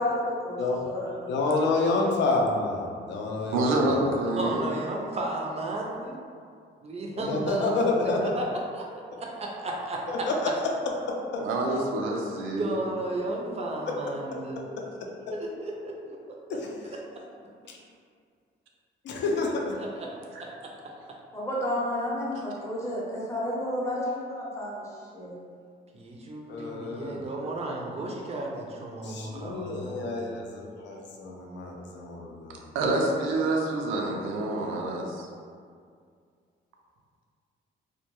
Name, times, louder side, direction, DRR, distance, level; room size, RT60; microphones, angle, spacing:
voice 1, 0.0-0.6 0.8-1.3 21.3-24.8 25.1-25.3, left 1 dB, 15° left, -6 dB, 0.7 m, -31 dB
voice 2, 1.3-4.0 7.2-8.2 10.3-10.4 11.1-11.4 16.6-16.7 17.7-17.8 19.0-19.8 26.5-27.2 29.0-32.7, left 3 dB, 65° left, 0 dB, 0.5 m, -29 dB
voice 3, 3.5-4.6 11.4-12.7 26.6-26.7 32.7-35.3, right 2 dB, 85° right, 0 dB, 0.5 m, -27 dB
voice 4, 4.4-6.1 6.8-10.3 12.6-14.6 15.3-16.6 16.9-17.3 19.8-21.2 25.9-30.5, right 2 dB, 30° right, -1 dB, 0.5 m, -34 dB
2.2 x 2.1 x 2.9 m, 2.2 s
cardioid pair, 90°, 20 cm